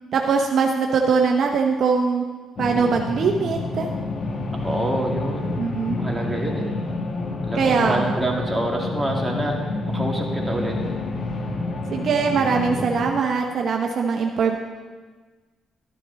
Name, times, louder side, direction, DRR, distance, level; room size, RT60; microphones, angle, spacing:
voice 1, 0.1-2.2 2.6-3.9 5.6-6.0 7.5-8.2 11.9-14.6, right 5 dB, 60° right, 2 dB, 0.8 m, -21 dB
sound 1, 2.6-13.1, left 3 dB, 55° left, 1.2 m, -28 dB
voice 2, 4.6-5.5 6.0-6.7 7.5-9.5 9.9-10.8, right 1 dB, 5° right, -2 dB, 2.4 m, -26 dB
13.0 x 9.8 x 4.0 m, 1.4 s
cardioid pair, 90°, 0 cm